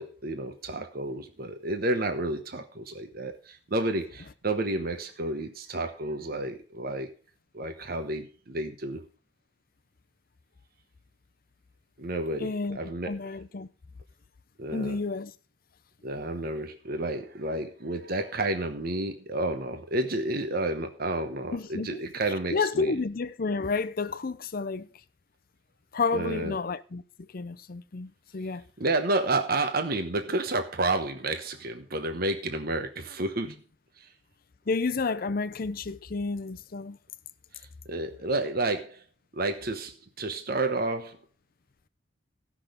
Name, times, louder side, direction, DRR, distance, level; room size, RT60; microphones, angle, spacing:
voice 1, 0.0-7.1 7.5-9.0 12.0-13.2 14.6-15.0 16.0-22.9 26.1-26.6 28.8-33.6 34.0-34.1 37.5-39.0 39.3-41.2, right 2 dB, 50° right, 1.0 m, -30 dB
voice 2, 12.4-12.8 13.1-13.7 14.7-15.3 21.5-22.0 22.5-24.9 25.9-27.0 27.3-28.6 34.7-37.0, left 4 dB, 50° left, 0.6 m, -30 dB
16.0 x 6.2 x 5.1 m
head